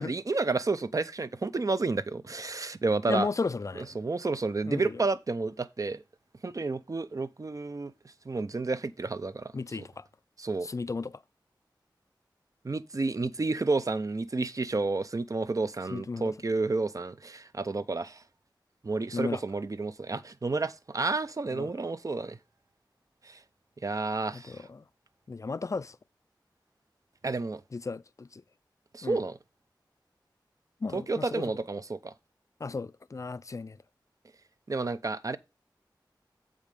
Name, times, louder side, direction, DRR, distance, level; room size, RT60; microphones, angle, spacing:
voice 1, 0.0-3.3 3.9-6.0 6.4-7.9 8.3-9.5 10.4-10.7 12.6-18.2 18.8-22.4 23.3-23.4 23.8-24.6 27.2-27.6 28.9-29.4 30.9-32.1 34.7-35.4, right 3 dB, 45° right, 0.6 m, -30 dB
voice 2, 3.1-4.0 4.6-5.0 9.5-10.1 10.6-11.2 15.9-16.3 19.1-19.4 21.5-21.7 24.3-24.8 25.3-26.0 27.7-28.4 29.0-29.2 30.8-31.5 32.6-33.8, left 4 dB, 40° left, 0.4 m, -34 dB
7.4 x 5.0 x 5.2 m
wide cardioid pair, 60°, 8 cm